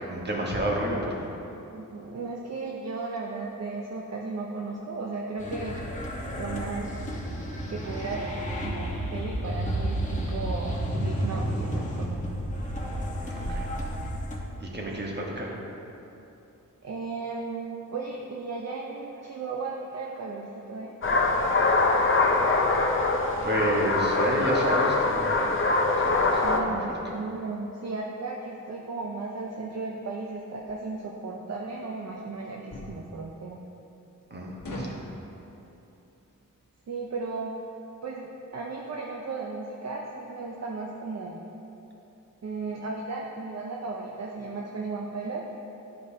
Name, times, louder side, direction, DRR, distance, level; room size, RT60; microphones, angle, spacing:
voice 1, 0.1-1.3 13.2-13.7 14.6-15.5 23.4-25.6 25.9-26.8 34.3-34.9, right 1 dB, 30° right, -2 dB, 1.2 m, -30 dB
voice 2, 1.7-5.8 6.4-7.0 7.7-12.2 16.8-20.9 26.2-33.6 36.9-37.6 38.0-38.3 38.5-41.4 42.4-45.5, right 3 dB, 50° right, -1 dB, 0.6 m, -35 dB
sound 1, 5.4-14.4, equal, 25° left, 1.1 m, -31 dB
sound 2, 21.0-26.6, left 3 dB, 40° left, 0.6 m, -23 dB
sound 3, 30.6-30.8 32.7-33.0 34.6-35.1, equal, 90° left, 1.2 m, -36 dB
11.5 x 5.0 x 2.8 m, 2.9 s
wide cardioid pair, 95°, 33 cm